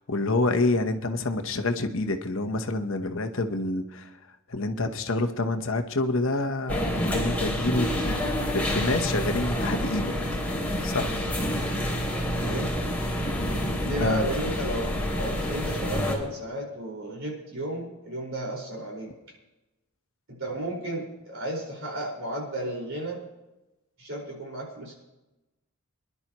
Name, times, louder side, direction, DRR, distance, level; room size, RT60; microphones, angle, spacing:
voice 1, 0.0-4.1 4.5-10.1 10.8-11.3 14.0-14.3, left 2 dB, 65° left, 6 dB, 1.0 m, -27 dB
sound 1, 6.7-16.1, equal, 5° left, 2.7 m, -28 dB
voice 2, 11.3-11.9 12.3-12.7 13.8-14.8 15.1-19.1 20.3-23.2 24.0-25.0, right 1 dB, 65° right, -1 dB, 5.0 m, -33 dB
25.0 x 11.0 x 3.1 m, 1.0 s
head